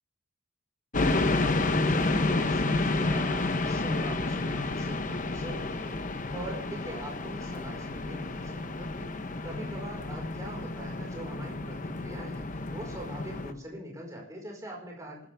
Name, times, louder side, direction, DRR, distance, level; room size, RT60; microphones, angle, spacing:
sound 1, 0.9-13.5, left 2 dB, 35° left, 0.9 m, -30 dB
voice 1, 1.8-6.0 6.3-9.1 9.4-12.4 12.7-15.3, right 1 dB, 15° right, -2 dB, 4.8 m, -42 dB
25.5 x 14.0 x 3.5 m, 0.68 s
head